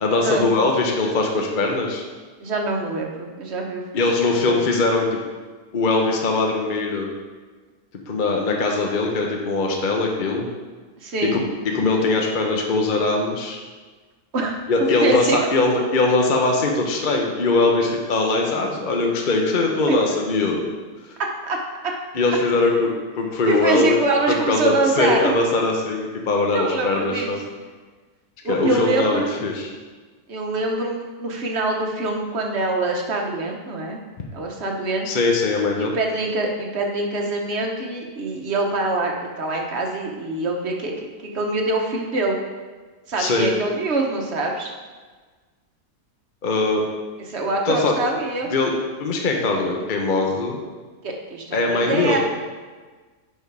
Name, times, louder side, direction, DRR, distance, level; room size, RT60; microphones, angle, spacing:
voice 1, 0.0-2.0 3.9-5.2 5.7-7.1 8.1-10.5 11.2-13.6 14.7-20.7 22.1-24.0 24.3-27.4 28.4-29.7 35.0-35.9 43.2-43.5 46.4-46.8 47.6-47.9 48.5-48.7 49.0-50.6 51.5-52.2, left 3 dB, 40° left, 1 dB, 1.0 m, -21 dB
voice 2, 2.4-3.8 4.3-4.6 11.0-11.4 14.3-14.5 14.8-15.4 19.9-20.0 21.5-21.6 23.4-25.3 26.5-27.3 28.4-29.3 30.3-34.0 34.3-35.1 35.8-39.1 39.4-42.4 43.1-44.7 47.3-48.5 51.0-52.2, right 2 dB, 50° right, 1 dB, 1.3 m, -24 dB
11.0 x 4.5 x 4.7 m, 1.4 s
omnidirectional pair, 1.6 m